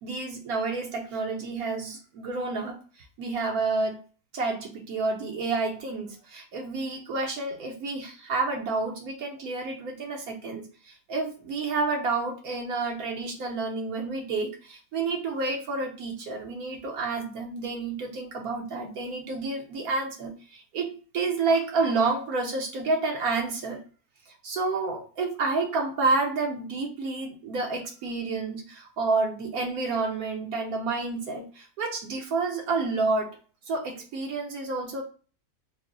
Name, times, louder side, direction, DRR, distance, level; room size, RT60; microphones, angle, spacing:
voice 1, 0.0-2.8 3.2-4.0 4.3-23.8 24.4-33.3 33.7-35.0, right 3 dB, 75° right, 1 dB, 1.2 m, -29 dB
3.7 x 2.1 x 3.7 m, 0.38 s
omnidirectional pair, 1.6 m